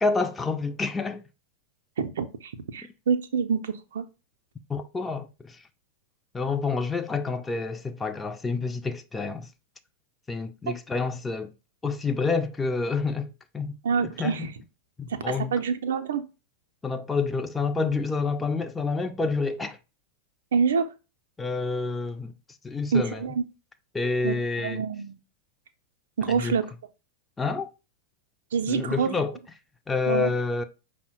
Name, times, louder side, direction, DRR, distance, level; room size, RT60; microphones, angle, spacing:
voice 1, 0.0-1.2 4.7-5.6 6.3-9.5 10.3-11.5 11.8-13.7 14.0-14.5 15.0-15.6 16.8-19.8 21.4-22.3 22.6-23.2 23.9-24.8 26.3-26.6 27.4-27.7 28.7-29.4 29.9-30.6, left 4 dB, 15° left, 0.4 m, -28 dB
voice 2, 2.0-4.0 10.7-10.8 13.8-14.5 15.1-16.2 20.5-20.9 22.9-23.4 24.2-25.1 26.2-26.6 28.5-29.1 30.1-30.3, right 6 dB, 60° right, 0.5 m, -26 dB
5.4 x 2.1 x 4.4 m
figure-of-eight pair, 90°, 0 cm